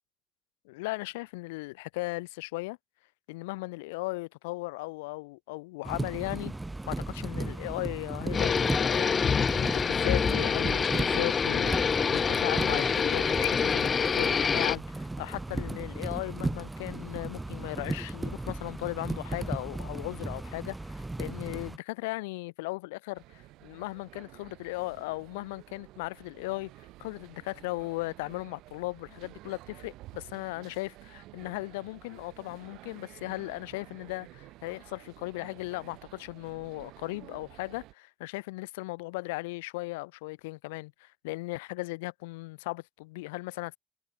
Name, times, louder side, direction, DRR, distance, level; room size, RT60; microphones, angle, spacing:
voice 1, 0.6-2.8 3.3-6.5 6.9-43.8, left 23 dB, 75° left, 2.5 m, -37 dB
sound 1, 5.9-21.8, right 2 dB, 15° right, 1.3 m, -36 dB
sound 2, 8.3-14.8, left 6 dB, 40° left, 1.7 m, -26 dB
sound 3, 23.1-37.9, right 17 dB, 65° right, 5.7 m, -52 dB
figure-of-eight pair, 45°, 0 cm